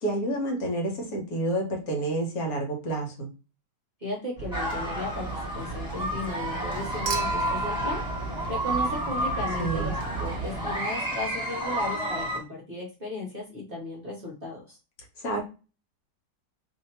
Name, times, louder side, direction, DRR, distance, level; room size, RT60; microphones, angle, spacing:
voice 1, 0.0-3.3 9.6-9.9 15.2-15.4, right 1 dB, 60° left, 2 dB, 1.4 m, -29 dB
voice 2, 4.0-8.0 8.5-14.8, left 2 dB, 40° right, -2 dB, 0.9 m, -35 dB
sound 1, 4.4-10.7, right 3 dB, 35° left, 1.1 m, -36 dB
sound 2, 4.5-12.4, right 1 dB, 5° right, 1.3 m, -31 dB
Human group actions / Chink clink / Liquid, 7.1-9.4 10.9-11.0, right 2 dB, 70° right, 0.6 m, -32 dB
2.8 x 2.8 x 4.2 m, 0.32 s
omnidirectional pair, 1.8 m